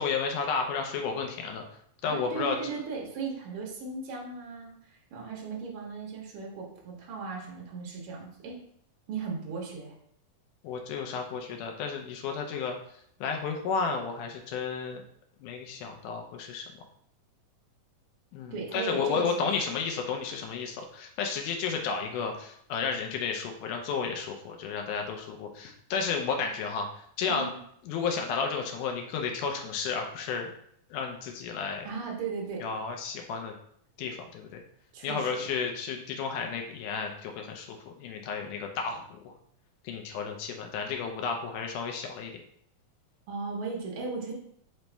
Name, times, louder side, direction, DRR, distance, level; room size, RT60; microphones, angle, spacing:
voice 1, 0.0-1.6 2.0-2.6 10.6-12.8 13.2-15.0 15.4-16.6 18.3-27.5 27.8-30.5 30.9-31.9 32.6-33.5 34.0-34.6 35.0-39.3 39.8-42.3, left 5 dB, 80° left, 3 dB, 2.0 m, -32 dB
voice 2, 2.0-8.6 9.1-9.9 18.5-19.5 27.3-27.6 31.8-32.7 34.9-35.4 43.3-44.3, right 4 dB, 60° right, -2 dB, 1.5 m, -37 dB
5.2 x 3.1 x 3.3 m, 0.66 s
omnidirectional pair, 3.8 m